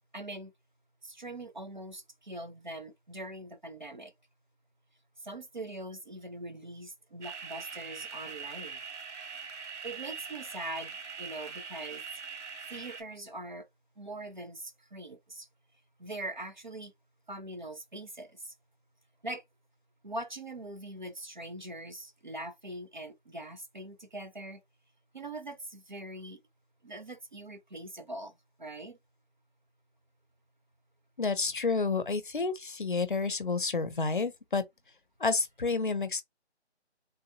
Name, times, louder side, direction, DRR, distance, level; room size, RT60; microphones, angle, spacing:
voice 1, 0.1-0.5 1.0-4.1 5.2-8.8 9.8-12.0 12.7-13.7 14.0-15.5 16.0-16.9 17.3-18.5 19.2-19.4 20.0-24.6 25.1-26.4 26.8-29.0, right 1 dB, 45° right, 0.4 m, -42 dB
sound 1, 7.2-13.0, right 5 dB, 90° right, 1.0 m, -42 dB
voice 2, 31.2-34.6 35.2-36.2, left 4 dB, 45° left, 0.6 m, -30 dB
3.7 x 2.8 x 2.7 m
figure-of-eight pair, 165°, 34 cm